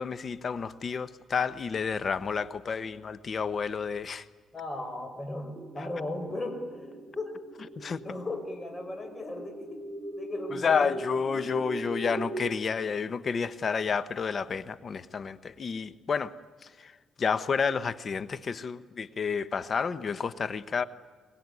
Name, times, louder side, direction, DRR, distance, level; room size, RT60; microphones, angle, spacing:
voice 1, 0.0-4.2 7.8-8.0 10.5-16.3 16.8-16.9 17.2-20.8, left 5 dB, 45° left, 1.0 m, -30 dB
voice 2, 4.5-7.4 7.7-9.8 10.2-10.9, left 2 dB, 20° left, 5.5 m, -37 dB
sound 1, 5.6-12.5, right 1 dB, 25° right, 4.8 m, -40 dB
22.5 x 22.5 x 9.8 m
cardioid pair, 90°, 0 cm